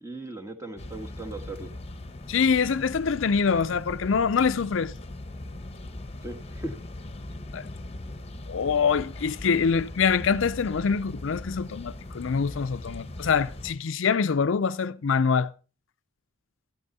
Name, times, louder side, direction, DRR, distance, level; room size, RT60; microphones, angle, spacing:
voice 1, 0.0-1.7 6.2-6.8, right 2 dB, 15° right, 1.5 m, -38 dB
sound 1, 0.8-13.7, left 1 dB, 30° left, 1.0 m, -40 dB
voice 2, 2.3-4.9 7.5-7.6 8.5-15.5, left 5 dB, 65° left, 0.5 m, -25 dB
13.0 x 12.0 x 4.1 m
head